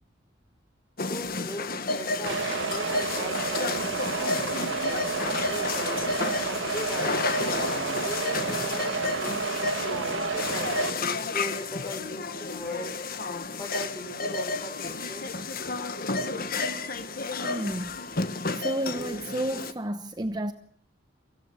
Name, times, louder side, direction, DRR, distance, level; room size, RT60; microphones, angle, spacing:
sound 1, 1.0-19.7, left 3 dB, 45° left, 1.4 m, -31 dB
voice 1, 1.1-10.8 11.3-12.9 13.5-15.3, equal, 15° left, 4.0 m, -40 dB
sound 2, 2.3-10.9, right 4 dB, 65° right, 1.9 m, -30 dB
voice 2, 17.4-18.2 18.5-20.5, right 1 dB, 20° right, 0.9 m, -31 dB
24.5 x 16.5 x 7.1 m
head